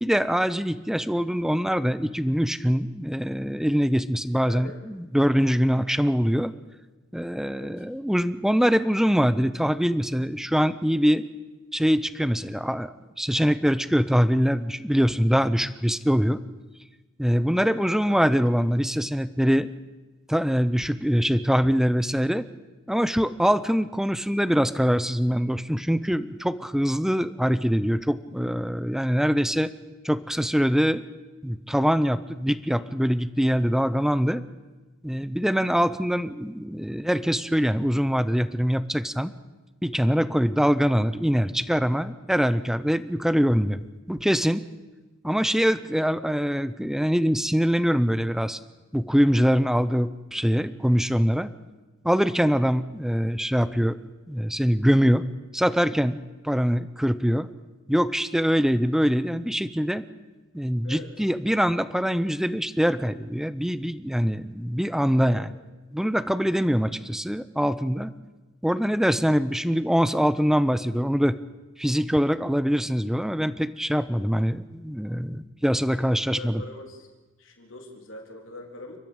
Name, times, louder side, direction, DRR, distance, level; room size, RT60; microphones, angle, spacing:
voice 1, 0.0-6.5 7.1-11.2 11.7-12.9 13.2-16.4 17.2-19.7 20.3-22.5 22.9-29.7 30.0-31.0 31.4-34.4 35.0-39.3 39.8-43.8 44.1-44.6 45.2-48.6 48.9-51.5 52.0-54.0 54.3-55.2 55.5-56.2 56.4-57.5 57.9-60.0 60.5-65.5 65.9-68.1 68.6-71.4 71.8-76.6, equal, ahead, 13 dB, 0.7 m, -23 dB
voice 2, 7.5-7.8 17.3-18.2 23.3-23.4 60.8-61.1 65.2-65.4 76.0-77.1 77.4-79.0, left 2 dB, 70° left, 1 dB, 3.7 m, -43 dB
29.5 x 10.0 x 8.8 m, 1.2 s
head